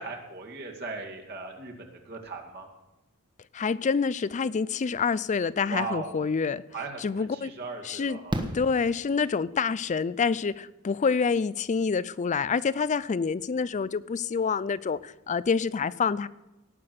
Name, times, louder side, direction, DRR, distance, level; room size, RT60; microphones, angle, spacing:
voice 1, 0.0-2.7 5.7-6.2 6.7-8.4, right 3 dB, 50° right, 0 dB, 2.2 m, -38 dB
voice 2, 3.5-6.6 7.0-7.5 7.8-8.2 8.5-16.3, left 5 dB, 35° left, 18 dB, 0.4 m, -27 dB
Fireworks, 6.6-6.7 8.3-9.6 11.4-11.5 11.7-11.8, right 1 dB, 20° right, 1.2 m, -34 dB
18.0 x 6.1 x 7.6 m, 1.0 s
head